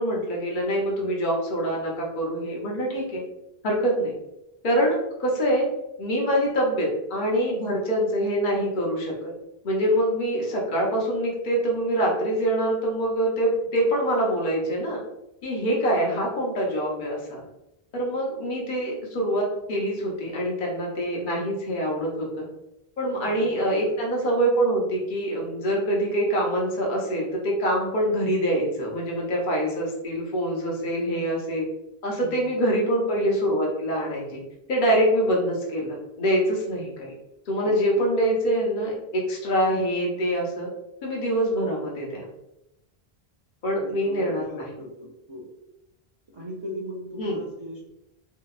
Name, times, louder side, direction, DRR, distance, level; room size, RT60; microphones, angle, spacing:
voice 1, 0.0-3.2 3.6-4.1 4.6-5.7 6.0-9.3 9.6-15.0 15.4-17.4 17.9-22.5 23.0-31.7 32.0-34.4 34.7-37.1 37.5-40.7 41.0-42.3 43.6-44.6 47.2-47.4, right 1 dB, 55° left, -2 dB, 0.8 m, -25 dB
voice 2, 23.2-23.6 32.2-32.6 37.6-37.8 43.8-45.5 46.3-47.8, equal, 45° right, -4 dB, 0.4 m, -38 dB
2.8 x 2.2 x 2.3 m, 0.87 s
omnidirectional pair, 1.0 m